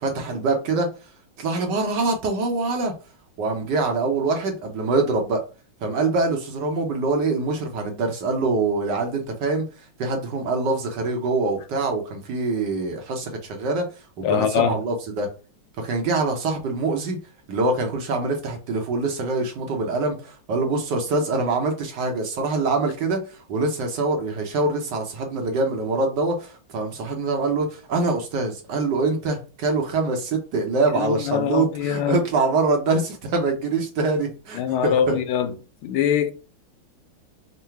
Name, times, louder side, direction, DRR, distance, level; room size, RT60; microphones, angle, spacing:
voice 1, 0.0-0.9 1.4-2.9 3.4-5.4 5.8-9.7 10.0-13.9 14.2-15.3 15.8-17.2 17.5-35.2, right 3 dB, 65° right, 1.3 m, -24 dB
voice 2, 14.2-14.7 30.9-32.2 34.5-35.5 35.8-36.3, left 8 dB, 85° left, 1.5 m, -23 dB
3.8 x 2.2 x 4.4 m
omnidirectional pair, 2.3 m